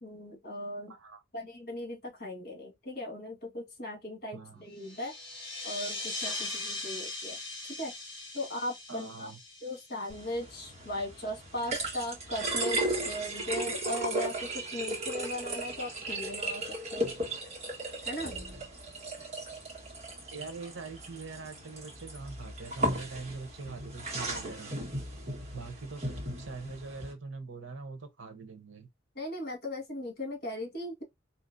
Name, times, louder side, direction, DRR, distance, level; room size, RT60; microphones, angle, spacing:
voice 1, 0.0-0.9 1.3-5.1 5.6-7.4 7.8-7.9 8.3-9.3 9.6-17.1 18.0-18.3 29.1-31.0, left 1 dB, 55° left, 1.7 m, -38 dB
voice 2, 0.9-1.2 4.3-4.7 8.9-9.4 20.3-24.8 25.5-26.0 26.4-28.9, right 4 dB, 80° right, 0.9 m, -43 dB
sound 1, 4.8-10.9, left 2 dB, 30° left, 2.4 m, -40 dB
sound 2, 10.1-27.1, right 1 dB, 35° right, 1.5 m, -36 dB
4.4 x 2.8 x 2.6 m
head